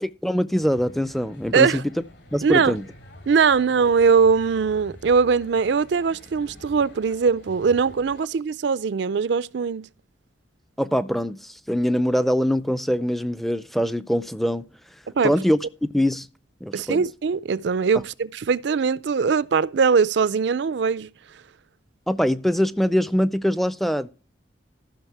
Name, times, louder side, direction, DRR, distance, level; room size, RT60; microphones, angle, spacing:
voice 1, 0.0-1.8 2.3-2.8 10.8-14.6 15.2-15.6 15.9-16.3 16.6-17.0 22.1-24.1, equal, ahead, 0.4 m, -23 dB
sound 1, 0.6-8.2, left 1 dB, 65° left, 3.5 m, -47 dB
voice 2, 2.4-2.8 3.3-9.9 15.2-15.3 16.7-21.1, right 5 dB, 65° right, 0.4 m, -21 dB
14.0 x 6.1 x 4.5 m
head